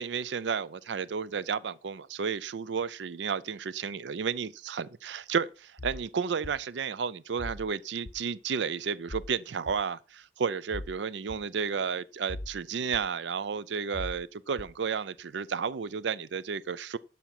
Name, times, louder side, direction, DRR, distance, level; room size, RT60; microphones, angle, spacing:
voice 1, 0.0-17.0, right 6 dB, 75° right, 0.5 m, -32 dB
sound 1, 5.8-6.0 6.4-6.6 7.4-7.6 8.1-8.2 9.1-9.3 9.7-9.8 10.7-10.9 11.3-11.4 12.3-12.6 12.9-13.0 13.9-14.2 14.6-14.7, left 1 dB, 50° left, 0.8 m, -39 dB
12.0 x 5.6 x 5.8 m
head